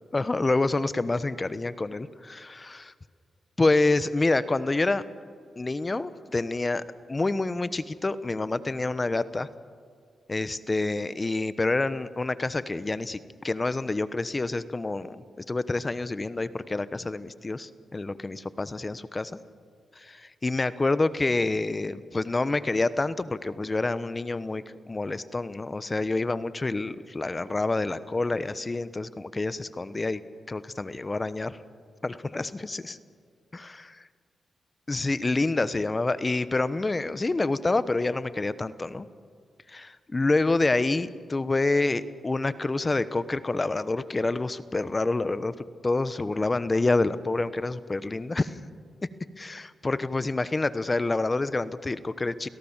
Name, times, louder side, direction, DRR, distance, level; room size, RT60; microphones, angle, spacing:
voice 1, 0.1-2.9 3.6-5.1 5.6-9.5 10.3-19.4 20.0-30.2 30.5-31.6 32.0-33.0 33.5-34.0 34.9-39.1 39.7-45.5 45.8-48.6 49.0-49.1 49.4-52.5, left 2 dB, 30° left, 15 dB, 1.1 m, -27 dB
29.5 x 17.5 x 7.4 m, 2.1 s
supercardioid pair, 50°, 0 cm